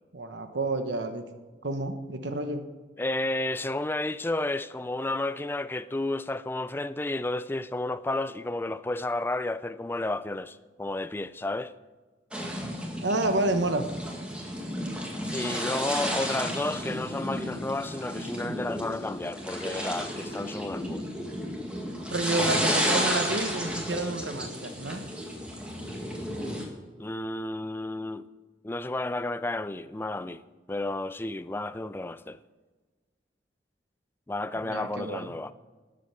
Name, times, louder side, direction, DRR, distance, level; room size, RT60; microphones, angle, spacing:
voice 1, 0.1-1.2 1.6-2.7 13.0-13.9 18.4-18.5 22.1-25.0 34.6-35.3, right 2 dB, 90° right, 1.1 m, -29 dB
voice 2, 3.0-11.7 15.3-21.1 27.0-28.3 28.6-30.4 30.7-32.4 34.3-35.5, left 2 dB, 10° left, 0.4 m, -32 dB
sound 1, 12.3-26.6, equal, 5° right, 1.8 m, -32 dB
12.5 x 7.7 x 6.9 m
head